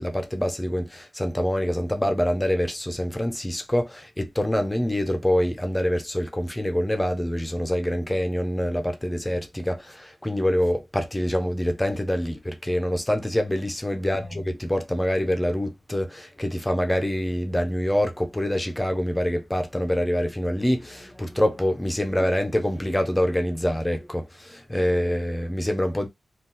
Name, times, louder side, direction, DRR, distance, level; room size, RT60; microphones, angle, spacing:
voice 1, 0.0-26.1, equal, 10° left, 0.5 m, -25 dB
2.7 x 2.3 x 3.6 m
wide cardioid pair, 135°, 0 cm